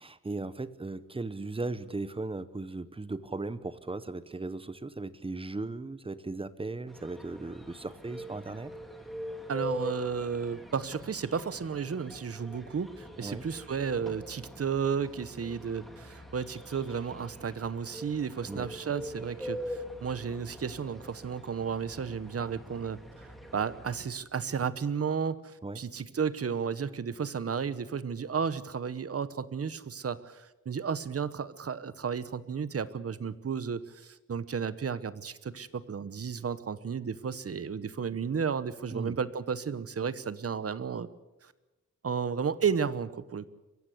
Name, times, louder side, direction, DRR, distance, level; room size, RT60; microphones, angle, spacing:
voice 1, 0.0-8.7 13.2-13.4 18.4-18.7 25.6-25.8 38.9-39.2, right 3 dB, 15° right, 15 dB, 0.8 m, -37 dB
sound 1, 6.9-24.0, equal, ahead, 2.6 m, -43 dB
voice 2, 9.5-41.1 41.4-41.5 42.0-43.5, right 6 dB, 50° right, 15 dB, 1.0 m, -33 dB
23.5 x 15.5 x 8.4 m, 1.1 s
wide cardioid pair, 160°, 31 cm